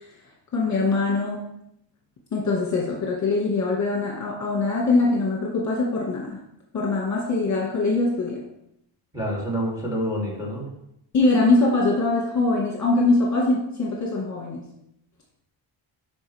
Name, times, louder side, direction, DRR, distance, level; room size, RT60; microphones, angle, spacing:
voice 1, 0.5-1.5 2.3-6.4 6.7-8.4 11.1-14.6, left 3 dB, 35° left, -3 dB, 1.8 m, -22 dB
voice 2, 9.1-10.7, equal, 10° right, -4 dB, 3.2 m, -27 dB
11.5 x 4.9 x 3.5 m, 0.79 s
cardioid pair, 125°, 46 cm